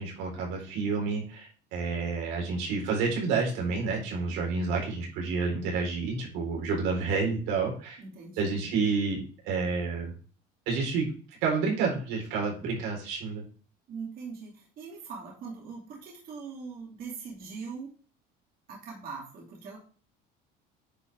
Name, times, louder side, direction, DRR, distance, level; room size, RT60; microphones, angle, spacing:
voice 1, 0.0-8.0 8.4-10.1 10.7-11.1 11.4-13.4, right 4 dB, 90° right, -1 dB, 4.1 m, -29 dB
voice 2, 8.0-8.7 13.9-17.9 18.7-19.8, right 5 dB, 50° right, -2 dB, 2.7 m, -41 dB
9.8 x 5.5 x 3.5 m, 0.40 s
cardioid pair, 145°, 19 cm